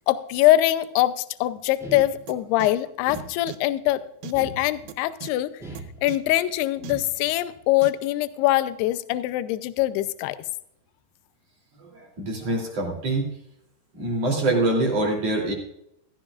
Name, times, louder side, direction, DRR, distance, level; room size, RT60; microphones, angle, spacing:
voice 1, 0.1-5.5 6.0-10.4, left 15 dB, 80° left, 13 dB, 2.5 m, -23 dB
sound 1, 1.8-2.6 3.1-3.8 4.3-5.1 5.6-6.4 6.9-7.5, right 2 dB, ahead, 1.5 m, -40 dB
sound 2, 2.3-2.4 2.6-2.7 3.1-3.2 3.5-3.6 4.2-4.3 4.9-5.0 5.2-5.3 5.8-5.9 6.1-6.2 6.8-6.9 7.8-7.9, right 14 dB, 85° right, 2.8 m, -37 dB
voice 2, 11.9-13.3 14.0-15.5, right 2 dB, 40° right, 0 dB, 3.7 m, -24 dB
15.5 x 13.5 x 2.5 m, 0.76 s
omnidirectional pair, 4.9 m